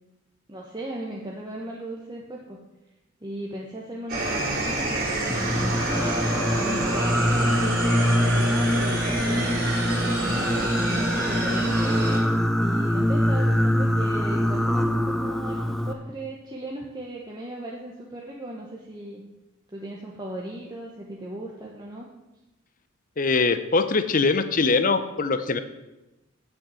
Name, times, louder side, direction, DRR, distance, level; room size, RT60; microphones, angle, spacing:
voice 1, 0.5-2.6 3.2-9.5 10.0-12.0 12.5-19.2 19.7-22.1, right 1 dB, 20° right, -3 dB, 1.1 m, -37 dB
sound 1, 4.1-12.2, right 2 dB, 45° right, 3.1 m, -28 dB
Singing, 5.2-15.9, equal, ahead, 0.5 m, -24 dB
voice 2, 23.2-25.6, left 4 dB, 40° left, 11 dB, 0.7 m, -22 dB
8.4 x 7.1 x 7.6 m, 1.0 s
head